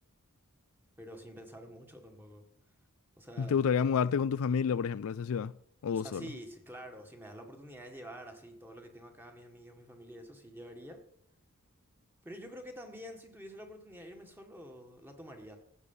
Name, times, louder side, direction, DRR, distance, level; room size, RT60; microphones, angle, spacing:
voice 1, 1.0-2.4 3.2-3.6 5.9-11.0 12.2-15.6, equal, 10° right, 1.8 m, -48 dB
voice 2, 3.4-5.5 5.8-6.3, left 6 dB, 65° left, 0.4 m, -29 dB
15.0 x 8.3 x 5.6 m
head